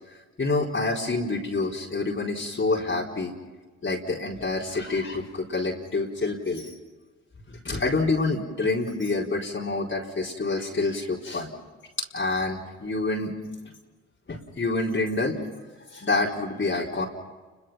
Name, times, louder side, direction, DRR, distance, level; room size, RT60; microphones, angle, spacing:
voice 1, 0.1-3.3 3.8-6.7 7.5-11.5 12.1-13.3 13.6-13.7 14.3-15.4 15.9-17.1, left 3 dB, 40° left, -3 dB, 4.3 m, -27 dB
29.5 x 23.0 x 5.9 m, 1.3 s
supercardioid pair, 55°, 32 cm